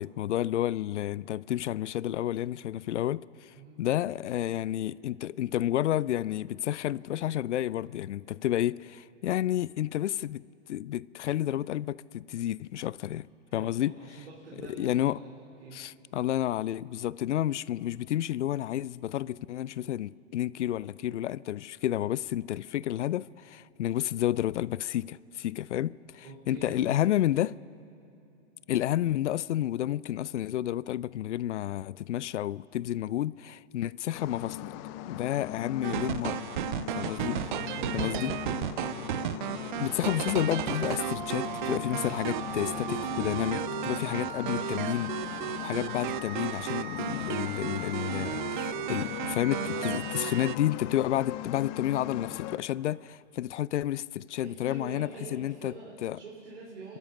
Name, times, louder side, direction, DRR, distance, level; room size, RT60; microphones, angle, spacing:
voice 1, 0.0-10.4 10.7-14.2 14.7-15.2 15.7-27.6 28.7-34.7 35.1-36.4 36.9-37.4 37.9-38.3 39.8-55.7 56.0-56.2, left 12 dB, 80° left, 0.5 m, -31 dB
voice 2, 13.5-15.3 15.6-15.8 26.2-27.1 37.3-38.6 47.9-48.5 54.4-57.0, right 3 dB, 80° right, 4.3 m, -45 dB
sound 1, 34.1-52.6, left 14 dB, 25° left, 0.4 m, -39 dB
sound 2, 35.8-50.6, right 13 dB, 45° right, 0.4 m, -34 dB
sound 3, 37.8-43.7, left 2 dB, 5° left, 1.8 m, -48 dB
28.0 x 13.0 x 7.2 m
hypercardioid pair, 135°, 35 cm